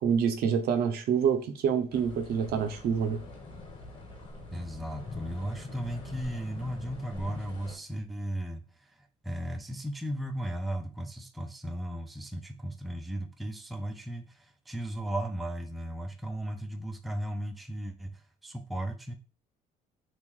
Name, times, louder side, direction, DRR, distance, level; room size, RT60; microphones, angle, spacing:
voice 1, 0.0-3.2, right 7 dB, 65° right, 8 dB, 0.6 m, -27 dB
sound 1, 1.9-7.8, left 2 dB, 30° left, 1.2 m, -44 dB
voice 2, 4.5-19.1, right 1 dB, ahead, 6 dB, 0.4 m, -36 dB
3.0 x 2.5 x 3.6 m, 0.35 s
cardioid pair, 110°, 17 cm